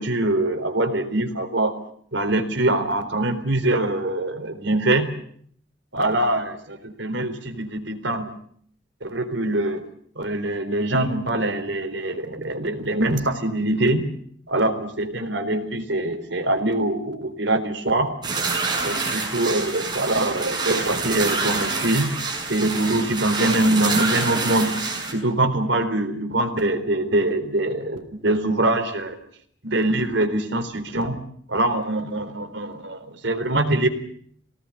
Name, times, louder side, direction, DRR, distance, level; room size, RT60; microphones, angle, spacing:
voice 1, 0.0-1.8 2.1-5.1 5.9-8.4 9.0-9.8 10.2-14.1 14.5-18.1 18.8-22.1 22.5-24.8 25.1-29.2 29.6-31.2 31.5-33.9, right 1 dB, 70° right, 7 dB, 4.0 m, -23 dB
sound 1, 18.2-25.1, right 3 dB, 25° right, 6.9 m, -26 dB
23.5 x 18.5 x 9.8 m, 0.62 s
head